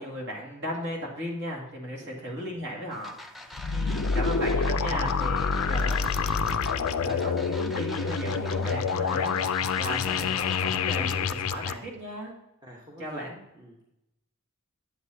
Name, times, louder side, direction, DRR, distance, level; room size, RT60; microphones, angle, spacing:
voice 1, 0.0-9.4 9.8-12.3 13.0-13.4, equal, 55° right, -2 dB, 2.2 m, -36 dB
sound 1, 2.9-11.3, left 1 dB, ahead, 0.4 m, -44 dB
sound 2, 3.5-11.7, left 5 dB, 65° left, 0.4 m, -27 dB
voice 2, 12.6-13.9, equal, 20° right, -3 dB, 1.1 m, -48 dB
8.2 x 7.9 x 2.8 m, 0.85 s
head